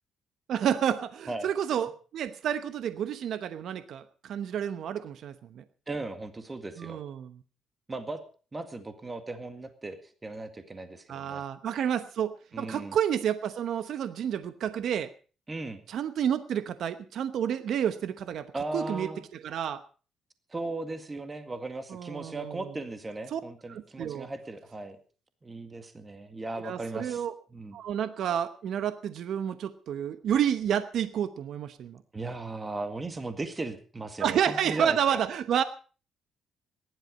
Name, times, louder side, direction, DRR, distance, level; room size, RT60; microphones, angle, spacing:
voice 1, 0.5-5.6 6.8-7.3 11.1-15.1 15.9-18.5 18.7-19.1 19.4-19.8 21.9-22.6 23.3-23.4 23.7-24.3 26.6-27.3 27.7-32.0 34.2-35.6, right 9 dB, 70° right, 11 dB, 0.9 m, -30 dB
voice 2, 5.9-7.0 7.9-8.2 8.5-11.4 12.5-13.0 15.5-15.8 18.5-19.2 20.5-25.0 25.4-27.2 27.5-27.8 32.1-35.2, right 2 dB, 25° right, 8 dB, 2.0 m, -37 dB
18.0 x 11.5 x 5.3 m, 0.39 s
cardioid pair, 90°, 0 cm